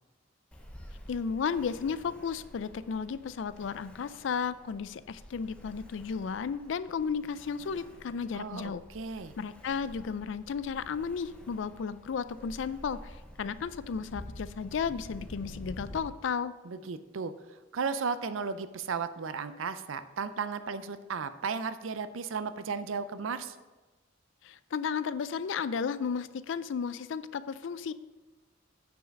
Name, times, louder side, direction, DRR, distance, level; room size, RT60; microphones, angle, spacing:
Ocean, 0.5-16.0, equal, 5° left, 0.8 m, -49 dB
voice 1, 1.1-8.8 9.4-16.5 24.4-27.9, left 6 dB, 70° left, 15 dB, 0.4 m, -34 dB
voice 2, 8.3-9.3 16.6-17.3 17.7-23.6, right 5 dB, 80° right, 12 dB, 0.5 m, -35 dB
9.2 x 4.8 x 5.2 m, 1.2 s
head